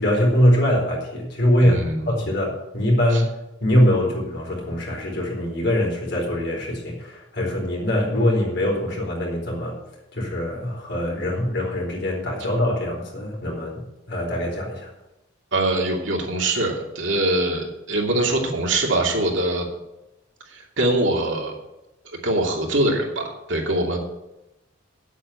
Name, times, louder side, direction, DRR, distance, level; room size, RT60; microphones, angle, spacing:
voice 1, 0.0-1.8 2.1-9.8 10.1-14.9, equal, 55° left, -1 dB, 4.3 m, -22 dB
voice 2, 1.6-2.2 3.1-3.2 15.5-19.7 20.5-21.5 22.2-23.2 23.5-24.0, right 1 dB, 70° right, 0 dB, 2.8 m, -23 dB
9.2 x 8.3 x 8.5 m, 0.94 s
head